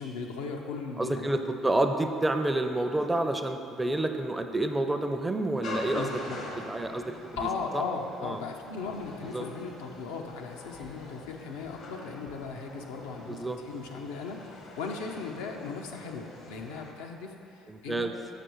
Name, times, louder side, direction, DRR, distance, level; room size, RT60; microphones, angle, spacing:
voice 1, 0.0-1.3 5.9-6.5 7.4-13.4 13.7-18.1, left 4 dB, 80° left, 1 dB, 0.5 m, -37 dB
voice 2, 1.0-6.1 6.7-7.2 7.7-7.8 8.2-8.4 9.3-9.5 13.3-13.6 17.7-18.1, right 2 dB, 15° right, 7 dB, 0.5 m, -29 dB
sound 1, 5.6-16.9, left 2 dB, 65° left, 0.8 m, -44 dB
6.7 x 6.1 x 3.0 m, 2.7 s
hypercardioid pair, 60°, 0 cm